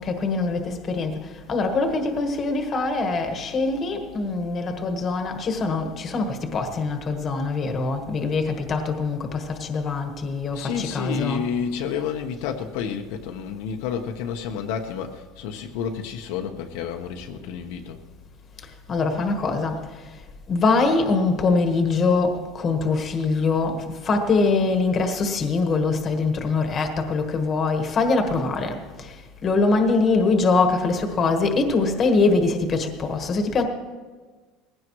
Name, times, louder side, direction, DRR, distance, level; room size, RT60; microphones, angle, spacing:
voice 1, 0.0-1.2 1.5-11.4 18.9-19.8 20.5-29.1 29.4-33.6, left 3 dB, 25° left, 5 dB, 1.4 m, -23 dB
voice 2, 10.5-18.0, left 7 dB, 70° left, 3 dB, 1.0 m, -30 dB
20.0 x 16.0 x 3.1 m, 1.4 s
cardioid pair, 165°, 0 cm